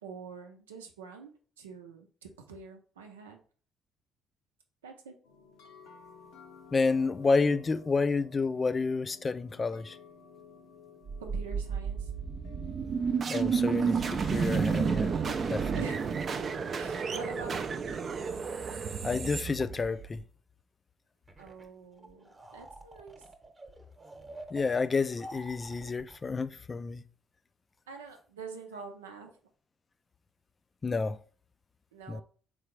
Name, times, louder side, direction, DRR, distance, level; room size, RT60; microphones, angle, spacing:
voice 1, 0.0-3.4 4.8-5.1 11.2-12.1 15.7-16.0 16.8-17.8 21.4-23.2 27.9-29.4 31.9-32.2, right 5 dB, 90° right, 0.6 m, -46 dB
sound 1, 5.2-15.2, left 4 dB, 80° left, 0.7 m, -54 dB
voice 2, 6.7-10.0 13.3-15.1 15.5-15.7 19.0-20.2 24.5-27.0 30.8-31.2 32.1-32.2, left 4 dB, 35° left, 0.3 m, -29 dB
sound 2, 11.1-20.2, right 6 dB, 45° right, 0.4 m, -31 dB
sound 3, 21.3-21.7 21.9-26.2, right 1 dB, 25° right, 1.0 m, -48 dB
3.9 x 3.4 x 3.2 m
hypercardioid pair, 50°, 0 cm